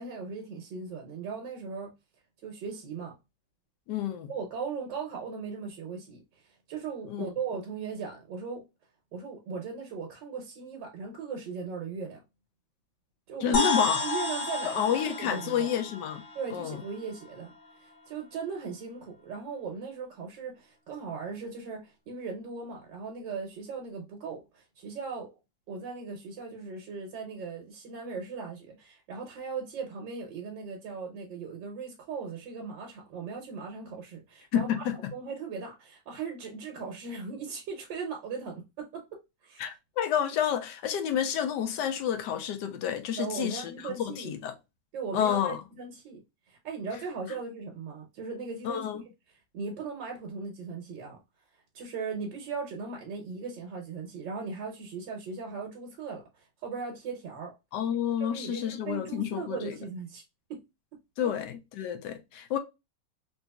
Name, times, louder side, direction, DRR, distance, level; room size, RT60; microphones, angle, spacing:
voice 1, 0.0-1.9 2.4-3.2 4.3-8.7 9.1-12.2 13.3-13.7 14.0-15.7 16.3-25.3 25.7-39.7 43.2-44.3 44.9-46.2 46.5-49.0 49.5-51.2 51.7-57.5 58.3-60.2 60.5-60.6 61.2-61.3, right 5 dB, 90° right, 1.7 m, -38 dB
voice 2, 3.9-4.3 7.1-7.3 13.4-14.0 14.6-16.2 16.5-16.8 34.5-35.0 39.6-44.5 45.1-45.6 48.6-49.0 57.7-59.8 61.2-62.6, left 9 dB, 80° left, 1.3 m, -29 dB
sound 1, 13.5-17.3, left 3 dB, 55° left, 1.1 m, -31 dB
3.8 x 2.8 x 2.2 m
omnidirectional pair, 1.9 m